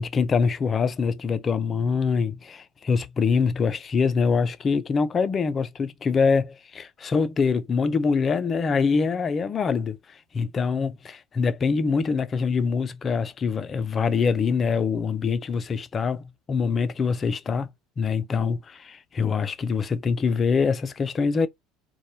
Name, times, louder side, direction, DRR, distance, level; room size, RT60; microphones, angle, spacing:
voice 1, 0.0-17.7 18.0-21.5, left 5 dB, 35° left, 0.3 m, -24 dB
2.1 x 2.0 x 2.9 m
hypercardioid pair, 75°, 0 cm